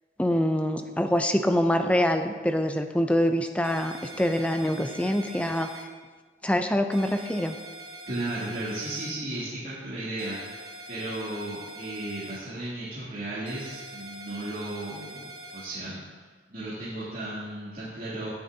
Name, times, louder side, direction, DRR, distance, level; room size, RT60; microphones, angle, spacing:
voice 1, 0.2-5.7 6.4-7.6, equal, 5° left, 7 dB, 0.5 m, -25 dB
sound 1, 3.6-5.8 6.9-9.1 10.2-12.4 13.5-15.7, right 1 dB, 75° right, 1.6 m, -43 dB
voice 2, 8.1-10.6 10.9-18.3, right 1 dB, 45° right, -12 dB, 2.8 m, -35 dB
17.0 x 8.7 x 2.8 m, 1.4 s
head